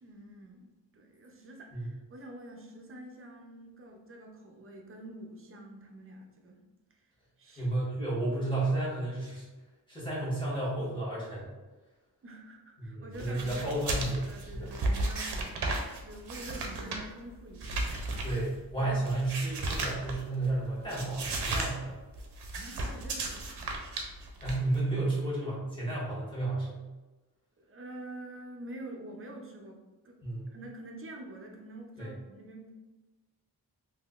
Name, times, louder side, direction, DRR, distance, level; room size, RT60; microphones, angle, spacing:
voice 1, 0.0-6.6 7.0-7.1 7.4-7.7 12.2-13.7 14.3-17.8 22.5-23.6 27.6-32.8, right 1 dB, 35° right, 1 dB, 0.5 m, -47 dB
voice 2, 7.6-9.5 9.9-11.5 12.8-14.7 18.2-21.9 24.4-26.8 30.2-30.6 32.0-32.1, right 2 dB, 10° left, -8 dB, 1.3 m, -32 dB
sound 1, 13.2-20.5 20.8-21.7 22.0-24.8, right 2 dB, 85° right, 0.7 m, -35 dB
3.7 x 2.8 x 2.4 m, 1.2 s
wide cardioid pair, 140°, 39 cm